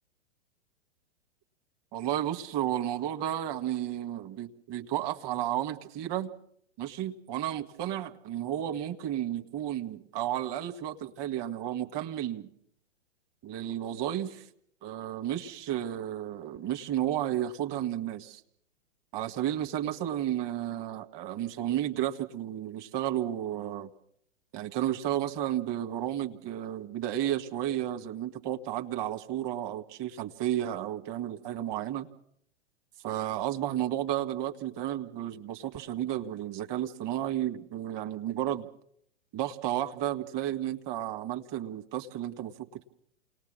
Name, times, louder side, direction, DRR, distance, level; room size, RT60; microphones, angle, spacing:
voice 1, 1.9-6.3 6.8-12.5 13.4-14.4 14.8-18.4 19.1-23.9 24.5-32.1 33.0-38.7 39.3-42.9, right 12 dB, 30° right, 1.6 m, -32 dB
28.5 x 19.5 x 6.3 m
figure-of-eight pair, 105°, 32 cm